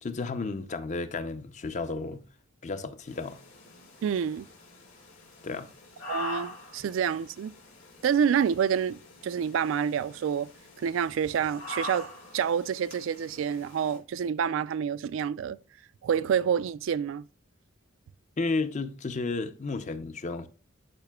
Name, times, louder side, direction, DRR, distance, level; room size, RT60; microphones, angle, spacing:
voice 1, 0.0-2.2 2.6-3.4 5.4-5.7 18.4-20.5, left 3 dB, 35° left, 0.5 m, -32 dB
sound 1, 3.1-14.0, left 2 dB, 85° left, 4.2 m, -44 dB
voice 2, 4.0-4.5 6.1-7.5 8.0-10.5 10.8-15.6 16.0-17.3, right 7 dB, 70° right, 0.3 m, -28 dB
12.0 x 4.9 x 2.2 m
head